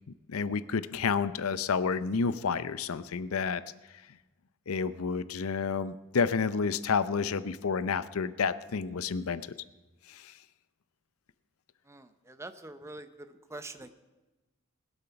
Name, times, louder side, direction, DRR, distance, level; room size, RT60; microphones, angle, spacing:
voice 1, 0.3-3.6 4.7-9.4 10.1-10.3, left 5 dB, 80° left, 14 dB, 0.6 m, -30 dB
voice 2, 11.9-13.9, right 2 dB, 15° right, 10 dB, 0.7 m, -45 dB
20.5 x 8.1 x 5.8 m, 1.1 s
head